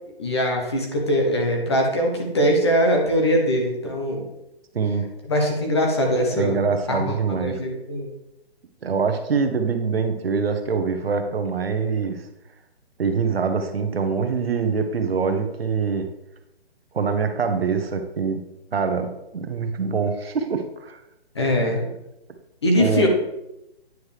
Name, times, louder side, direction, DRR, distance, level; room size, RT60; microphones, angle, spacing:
voice 1, 0.2-4.2 5.3-6.6 6.9-8.1 21.3-21.8 22.6-23.1, equal, 25° left, 1 dB, 0.9 m, -22 dB
voice 2, 4.7-5.1 6.3-7.6 8.8-12.2 13.0-16.1 16.9-18.4 18.7-21.0 21.6-21.7 22.8-23.1, right 5 dB, 70° right, 7 dB, 1.0 m, -24 dB
9.3 x 4.7 x 3.3 m, 0.88 s
hypercardioid pair, 175°, 32 cm